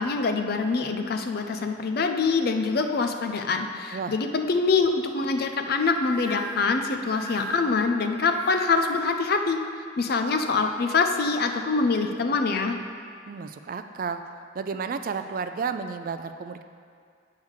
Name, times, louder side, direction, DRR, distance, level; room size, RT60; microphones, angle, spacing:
voice 1, 0.0-9.6 10.0-12.8, left 4 dB, 55° left, 6 dB, 0.5 m, -25 dB
sound 1, 6.0-9.1, equal, 85° left, 0.9 m, -38 dB
voice 2, 13.3-14.2 14.5-16.6, right 5 dB, 50° right, 9 dB, 0.3 m, -32 dB
8.1 x 3.6 x 6.3 m, 2.2 s
head